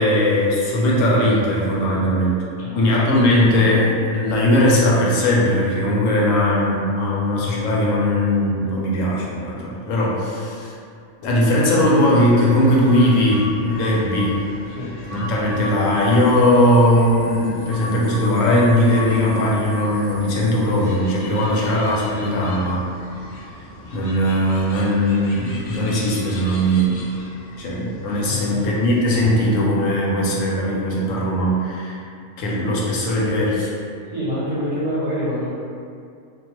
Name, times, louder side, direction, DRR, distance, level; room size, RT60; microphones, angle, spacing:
voice 1, 0.0-2.4 2.7-10.7 11.2-14.4 15.1-22.9 23.9-27.0 27.6-32.0 32.4-33.7, left 1 dB, 85° left, -4 dB, 1.0 m, -19 dB
sound 1, 12.0-29.2, left 1 dB, 65° left, 0.4 m, -36 dB
voice 2, 14.7-15.0 21.5-21.7 28.3-28.7 34.1-35.5, equal, 45° right, -11 dB, 0.6 m, -27 dB
2.3 x 2.2 x 2.9 m, 2.4 s
omnidirectional pair, 1.3 m